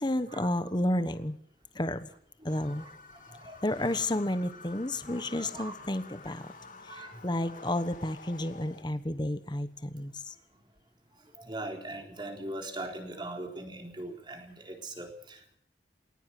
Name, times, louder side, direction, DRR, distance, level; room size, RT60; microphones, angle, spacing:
voice 1, 0.0-1.4 1.7-2.1 2.4-2.8 3.6-6.5 6.8-10.3, left 1 dB, 25° left, 11 dB, 1.1 m, -31 dB
voice 2, 2.4-3.6 5.1-5.7 6.9-7.3 11.1-15.6, right 1 dB, 25° right, 3 dB, 4.0 m, -41 dB
sound 1, 2.5-8.8, left 3 dB, 45° left, 2.5 m, -50 dB
20.0 x 19.0 x 7.7 m, 0.63 s
head